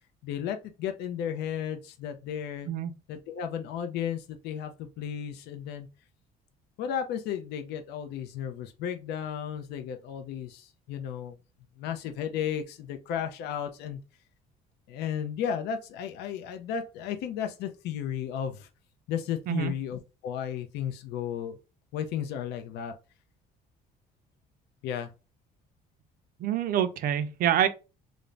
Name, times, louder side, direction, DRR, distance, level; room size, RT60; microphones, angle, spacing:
voice 1, 0.2-2.7 3.1-5.9 6.8-11.4 11.8-14.0 14.9-18.7 19.1-21.6 21.9-22.9 24.8-25.1, left 9 dB, 80° left, 0.4 m, -34 dB
voice 2, 26.4-27.7, right 10 dB, 60° right, 0.4 m, -26 dB
2.4 x 2.1 x 3.2 m
cardioid pair, 110°, 17 cm